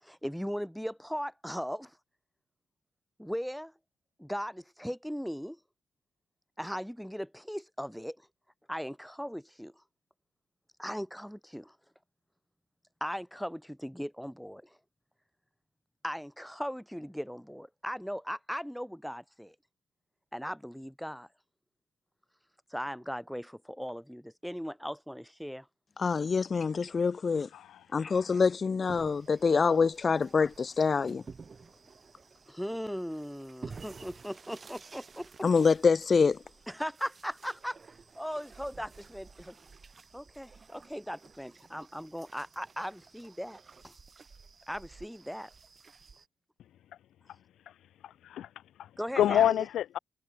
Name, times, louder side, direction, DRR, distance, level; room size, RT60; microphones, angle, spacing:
voice 1, 0.0-2.0 3.2-3.7 4.2-5.6 6.6-8.2 8.7-9.7 10.8-11.8 13.0-14.6 16.0-19.5 20.3-21.3 22.7-25.7 32.5-35.5 36.7-37.8 38.2-39.6 40.1-43.6 43.8-44.0 44.7-45.5 49.0-49.7, equal, ahead, 2.4 m, -38 dB
voice 2, 26.0-27.5 27.9-31.2 35.4-36.4, left 5 dB, 35° left, 0.8 m, -26 dB
voice 3, 27.5-27.8 47.7-47.8 48.0-48.5 48.8-48.9 49.2-50.0, left 11 dB, 75° left, 0.5 m, -27 dB
sound 1, 28.8-46.3, right 5 dB, 35° right, 6.1 m, -52 dB
cardioid pair, 90°, 0 cm